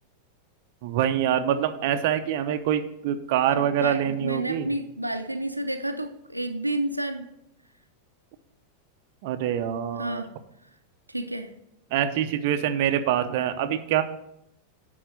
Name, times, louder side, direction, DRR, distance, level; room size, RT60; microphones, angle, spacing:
voice 1, 0.8-4.7 9.2-10.2 11.9-14.0, right 10 dB, 50° right, 8 dB, 0.6 m, -25 dB
voice 2, 3.5-7.3 10.0-10.3 11.1-11.5, right 1 dB, 85° right, 6 dB, 0.6 m, -30 dB
10.0 x 3.9 x 6.4 m, 0.78 s
figure-of-eight pair, 90°, 0 cm